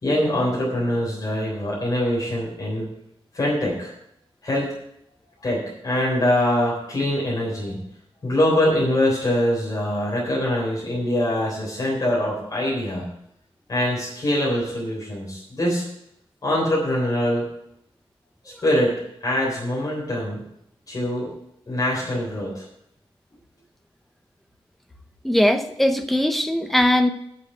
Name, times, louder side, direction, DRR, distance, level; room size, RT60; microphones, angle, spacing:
voice 1, 0.0-2.9 3.3-3.9 4.4-4.7 5.4-7.8 8.2-13.1 13.7-15.8 16.4-17.5 18.6-20.4 20.9-21.3 21.7-22.6, left 1 dB, 40° left, -5 dB, 3.7 m, -23 dB
voice 2, 25.2-27.1, left 1 dB, ahead, 7 dB, 0.8 m, -20 dB
9.4 x 6.5 x 8.2 m, 0.75 s
wide cardioid pair, 175°, 10 cm